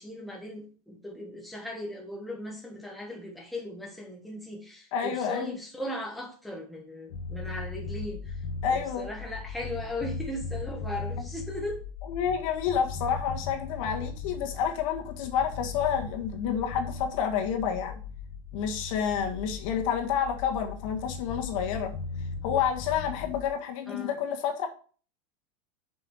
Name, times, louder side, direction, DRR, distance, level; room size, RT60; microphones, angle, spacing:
voice 1, 0.0-8.4 8.7-11.8 23.9-24.2, left 1 dB, ahead, -1 dB, 1.4 m, -38 dB
voice 2, 4.9-5.6 8.6-9.1 12.1-17.9 18.5-21.9 22.4-24.7, left 8 dB, 60° left, 3 dB, 1.7 m, -29 dB
sound 1, 7.1-23.5, left 4 dB, 75° left, 1.8 m, -38 dB
7.1 x 5.6 x 4.7 m, 0.41 s
supercardioid pair, 155°, 19 cm